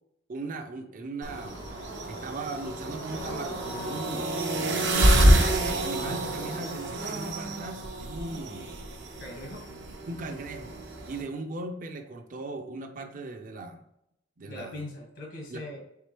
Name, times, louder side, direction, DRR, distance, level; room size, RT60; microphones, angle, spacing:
voice 1, 0.3-1.6 2.1-4.5 5.3-8.8 10.1-10.8 11.1-13.8 14.4-14.8 15.5-15.8, right 2 dB, 50° right, 5 dB, 0.5 m, -38 dB
sound 1, 1.2-11.2, right 1 dB, 80° right, 0.9 m, -27 dB
sound 2, 1.4-7.1, left 2 dB, 25° left, 0.3 m, -43 dB
voice 2, 9.2-9.6 14.5-15.8, left 1 dB, 75° left, 1 dB, 1.1 m, -40 dB
4.7 x 3.6 x 3.0 m, 0.80 s
head